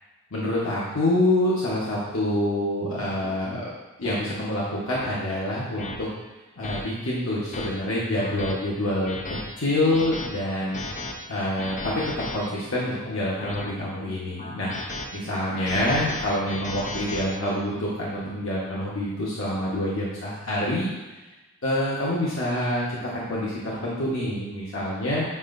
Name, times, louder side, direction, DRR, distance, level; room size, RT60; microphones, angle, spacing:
voice 1, 0.3-3.7 4.0-6.1 6.6-10.8 11.3-12.0 12.3-14.7 15.1-20.9 21.6-22.8 23.1-25.2, left 1 dB, 90° left, -6 dB, 1.2 m, -26 dB
sound 1, 3.2-3.4 4.0-4.2 4.9-5.1 5.8-6.0 6.6-6.8 7.3-7.7 8.2-8.5 9.0-9.4 9.9-10.3 10.7-11.1 11.6-12.4 13.0-13.7 14.4-15.1 15.5-17.3, left 2 dB, 35° left, 0.6 m, -35 dB
7.9 x 5.5 x 2.6 m, 1.1 s
head